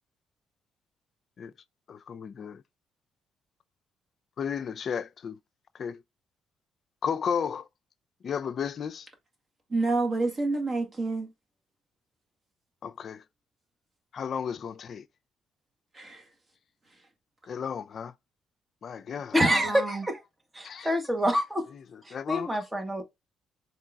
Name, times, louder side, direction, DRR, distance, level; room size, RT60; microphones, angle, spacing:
voice 1, 1.9-2.6 4.4-5.4 5.8-6.0 7.0-7.7 8.2-9.1 12.8-13.2 14.1-15.0 17.5-18.1 18.8-19.4 20.6-21.0 21.7-22.6, left 7 dB, 55° left, 0.4 m, -34 dB
voice 2, 9.7-11.3 15.9-16.2 19.5-20.0, right 3 dB, 30° right, 1.8 m, -29 dB
voice 3, 19.3-20.2 20.5-21.7 22.1-23.0, equal, 10° right, 1.3 m, -26 dB
4.6 x 3.7 x 2.3 m
cardioid pair, 90°, 0 cm